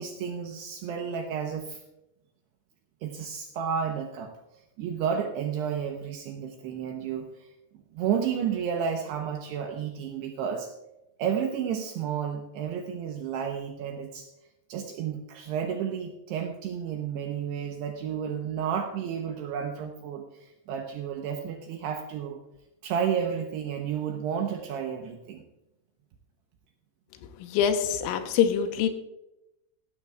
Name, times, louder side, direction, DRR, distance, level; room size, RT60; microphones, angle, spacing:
voice 1, 0.0-1.8 3.0-4.3 4.8-7.5 7.9-10.7 11.2-14.3 14.7-22.4 22.8-25.4, right 7 dB, 80° right, 3 dB, 2.5 m, -31 dB
voice 2, 27.4-28.9, left 8 dB, 90° left, 8 dB, 3.4 m, -24 dB
17.0 x 12.0 x 2.4 m, 0.89 s
omnidirectional pair, 5.8 m